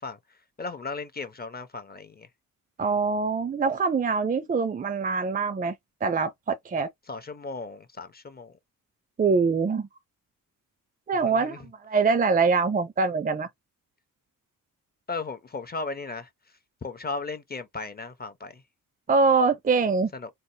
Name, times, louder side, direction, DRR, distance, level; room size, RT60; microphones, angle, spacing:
voice 1, 0.0-2.3 7.1-8.6 11.2-11.7 15.1-16.3 16.8-18.6 20.1-20.3, left 3 dB, 30° left, 0.5 m, -36 dB
voice 2, 2.8-5.7 6.0-6.9 9.2-9.9 11.1-13.5 19.1-20.1, right 4 dB, 25° right, 0.4 m, -24 dB
4.1 x 2.0 x 2.7 m
wide cardioid pair, 140°, 35 cm